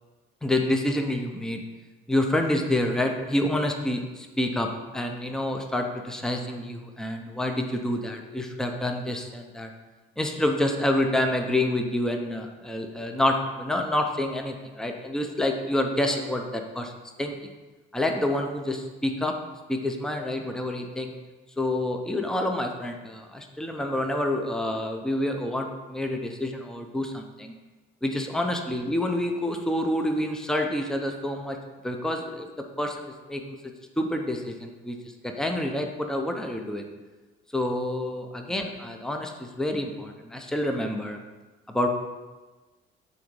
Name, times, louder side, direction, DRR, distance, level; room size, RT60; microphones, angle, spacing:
voice 1, 0.4-1.6 2.1-4.7 4.9-9.7 10.2-16.9 17.2-17.3 17.9-19.3 19.7-21.1 21.6-27.5 28.0-31.6 31.8-32.5 32.8-33.5 34.0-36.8 37.5-41.2 41.7-41.9, left 1 dB, 5° left, 3 dB, 0.7 m, -28 dB
6.5 x 4.0 x 5.3 m, 1.2 s
cardioid pair, 90°, 21 cm